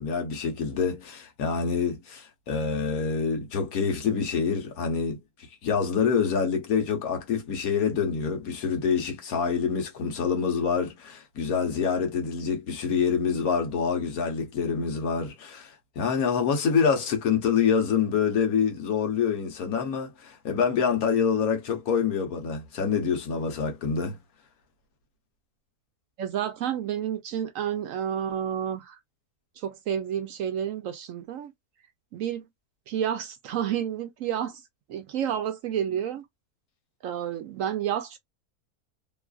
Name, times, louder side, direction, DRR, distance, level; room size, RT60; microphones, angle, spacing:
voice 1, 0.0-5.2 5.6-24.2, left 6 dB, 70° left, 1.3 m, -26 dB
voice 2, 26.2-29.0 29.6-31.5 32.1-32.4 32.9-34.6 34.9-36.2 37.0-38.2, right 9 dB, 70° right, 0.9 m, -30 dB
3.1 x 2.4 x 2.3 m
omnidirectional pair, 1.6 m